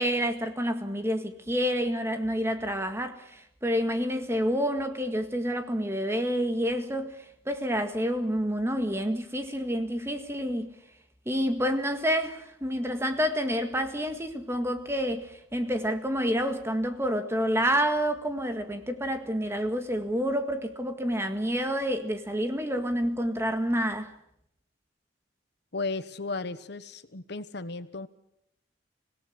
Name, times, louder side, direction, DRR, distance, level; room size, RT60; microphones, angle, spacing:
voice 1, 0.0-7.2 7.4-10.7 11.2-24.1, equal, 15° right, 1.8 m, -28 dB
voice 2, 25.7-28.1, left 3 dB, 55° left, 1.1 m, -35 dB
26.0 x 17.5 x 7.9 m
head